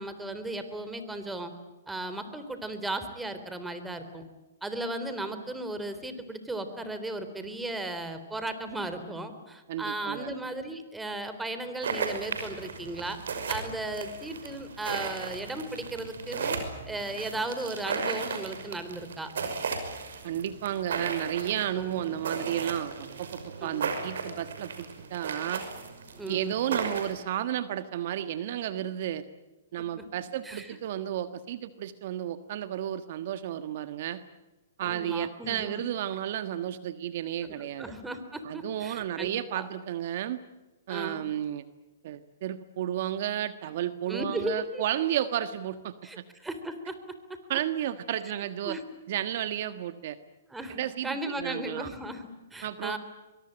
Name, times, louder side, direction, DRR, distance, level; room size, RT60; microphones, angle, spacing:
voice 1, 0.0-1.5 1.9-4.2 4.6-13.2 13.5-16.6 16.9-19.5 21.8-22.0 23.6-23.9 26.1-26.6 30.4-30.8 34.8-35.8 37.4-37.5 37.8-39.3 39.5-39.7 40.9-41.3 44.1-44.8 46.0-46.2 46.4-46.9 48.6-48.8 50.5-53.0, right 2 dB, 5° right, 9 dB, 3.6 m, -36 dB
voice 2, 9.7-10.3 20.2-25.6 26.3-29.2 29.7-34.2 34.8-37.9 38.4-40.4 40.9-41.6 42.0-46.2 47.5-48.8 49.1-50.2 50.7-51.9 52.6-53.0, right 11 dB, 55° right, 11 dB, 1.4 m, -32 dB
sound 1, 11.8-27.1, right 5 dB, 75° right, 5.7 m, -36 dB
24.0 x 23.0 x 8.9 m, 1.1 s
hypercardioid pair, 135°, 0 cm